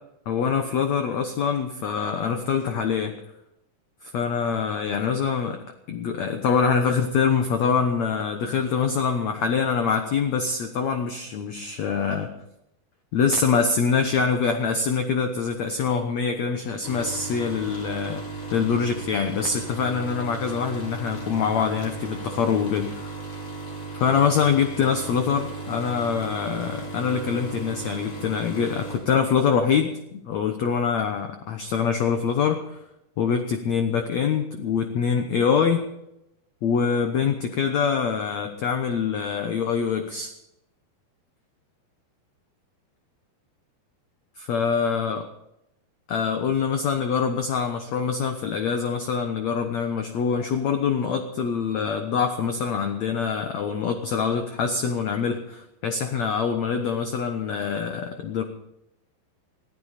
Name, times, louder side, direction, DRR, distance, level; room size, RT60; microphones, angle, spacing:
voice 1, 0.3-3.2 4.0-5.6 5.9-12.3 13.1-18.2 18.5-23.1 23.9-32.8 33.2-35.8 36.6-40.3 44.4-45.3 46.1-58.4, left 6 dB, 75° left, 6 dB, 1.6 m, -24 dB
sound 1, 16.8-29.0, right 3 dB, 35° left, 4.9 m, -36 dB
21.0 x 14.5 x 4.2 m, 0.83 s
omnidirectional pair, 4.8 m